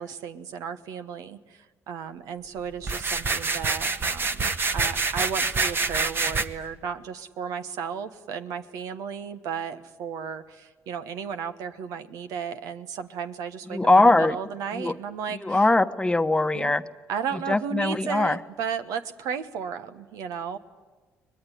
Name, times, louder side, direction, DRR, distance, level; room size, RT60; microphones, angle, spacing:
voice 1, 0.0-15.6 16.5-16.7 17.1-20.6, right 7 dB, 80° right, 10 dB, 1.3 m, -34 dB
sound 1, 2.8-6.4, right 4 dB, 40° right, 1.5 m, -26 dB
voice 2, 13.7-14.4 14.7-15.0 15.3-16.8 17.3-18.4, left 2 dB, 15° left, 10 dB, 1.1 m, -21 dB
23.5 x 20.5 x 10.0 m, 1.4 s
supercardioid pair, 65°, 6 cm